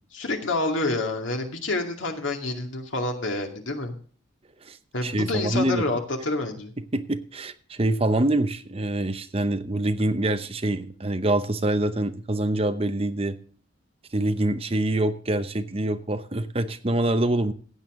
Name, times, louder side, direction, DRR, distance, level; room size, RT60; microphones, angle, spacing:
voice 1, 0.1-3.9 4.9-6.7, left 2 dB, 80° left, 3 dB, 2.3 m, -28 dB
voice 2, 5.0-5.8 6.9-13.4 14.1-17.5, right 1 dB, 30° right, 10 dB, 0.8 m, -25 dB
15.5 x 8.8 x 3.7 m, 0.43 s
head